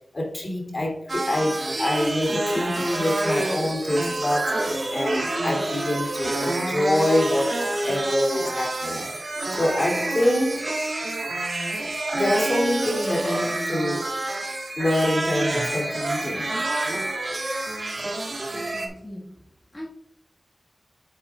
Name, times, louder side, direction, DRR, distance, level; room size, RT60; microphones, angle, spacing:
voice 1, 0.1-4.6 4.9-7.6 7.9-9.1 9.5-10.6 12.1-14.1 14.8-16.5, left 1 dB, 50° left, -1 dB, 3.0 m, -25 dB
sound 1, 1.1-18.9, right 2 dB, 55° right, 1.7 m, -28 dB
voice 2, 18.5-19.3 19.7-19.9, left 1 dB, 25° left, -5 dB, 1.8 m, -40 dB
8.2 x 7.8 x 2.5 m, 0.71 s
wide cardioid pair, 55°, 0 cm